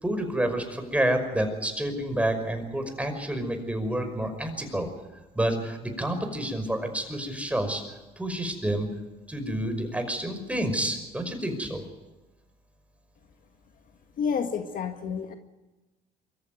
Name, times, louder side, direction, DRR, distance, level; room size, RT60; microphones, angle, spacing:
voice 1, 0.0-4.9 5.3-7.8 8.2-8.9 9.3-11.8, right 1 dB, 10° right, 6 dB, 5.5 m, -29 dB
voice 2, 14.2-15.3, left 6 dB, 55° left, 6 dB, 1.8 m, -29 dB
23.5 x 14.5 x 9.5 m, 1.1 s
supercardioid pair, 85°, 17 cm